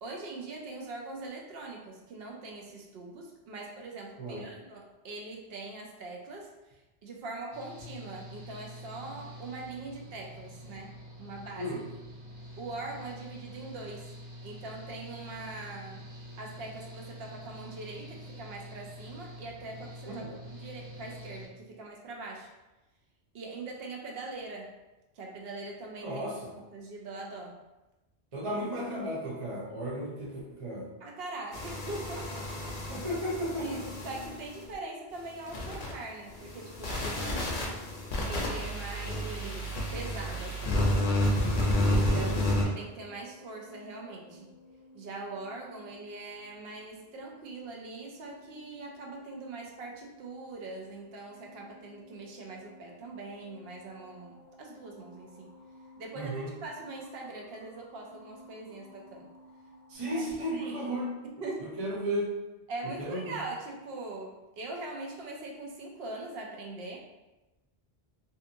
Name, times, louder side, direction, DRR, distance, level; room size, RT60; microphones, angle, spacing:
voice 1, 0.0-11.8 12.6-14.1 14.4-16.1 16.4-20.3 20.6-22.5 23.3-24.7 25.2-26.2 26.7-27.6 31.0-32.5 32.9-33.0 33.6-33.8 34.0-37.6 38.3-41.0 41.9-44.5 44.9-55.5 56.0-59.3 60.1-60.2 60.5-60.9 61.2-61.7 62.7-67.0, right 2 dB, 70° right, -1 dB, 0.8 m, -42 dB
voice 2, 4.2-4.5 11.6-11.8 20.1-20.3 26.0-26.5 28.3-30.9 32.9-33.9 42.0-42.3 56.1-56.5 59.9-61.1 61.6-62.4 63.0-63.4, equal, 40° right, -5 dB, 0.5 m, -34 dB
Engine / Mechanical fan, 7.5-21.4, equal, 85° right, 1.4 m, -46 dB
sound 1, 31.5-34.6 35.5-35.9 36.3-42.6, left 1 dB, 60° left, 0.7 m, -30 dB
sound 2, 40.9-60.0, left 1 dB, 15° left, 0.6 m, -55 dB
2.7 x 2.4 x 2.5 m, 1.0 s
omnidirectional pair, 1.1 m